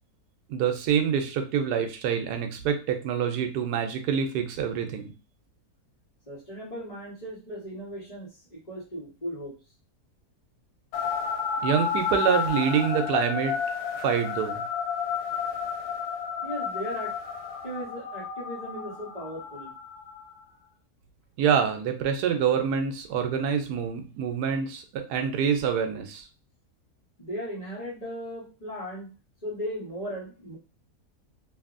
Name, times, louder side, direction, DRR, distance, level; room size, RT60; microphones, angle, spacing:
voice 1, 0.5-5.1 11.6-13.5 14.0-14.6 21.4-26.2, right 7 dB, 90° right, 6 dB, 1.2 m, -26 dB
voice 2, 6.3-9.5 16.4-17.1 17.6-19.7 27.2-29.1 29.4-30.6, equal, 25° left, -7 dB, 1.1 m, -37 dB
sound 1, 10.9-20.4, left 7 dB, 90° left, 1.1 m, -31 dB
2.8 x 2.6 x 2.4 m, 0.33 s
omnidirectional pair, 1.7 m